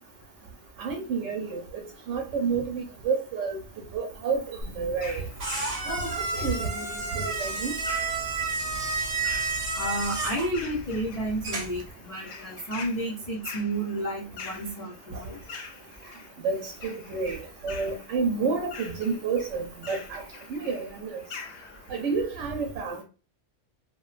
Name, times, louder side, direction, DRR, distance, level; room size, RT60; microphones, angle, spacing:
voice 1, 0.8-1.6 2.1-3.6 3.9-5.2 5.9-7.7 16.4-20.2 20.5-21.2 21.9-23.0, right 5 dB, 75° right, 3 dB, 0.9 m, -30 dB
sound 1, 4.6-11.9, right 3 dB, 40° right, 0.6 m, -31 dB
sound 2, 5.0-22.2, left 5 dB, 70° left, 0.8 m, -46 dB
voice 2, 9.7-15.4, right 1 dB, 45° left, -5 dB, 0.4 m, -31 dB
2.6 x 2.1 x 2.3 m, 0.33 s
omnidirectional pair, 1.3 m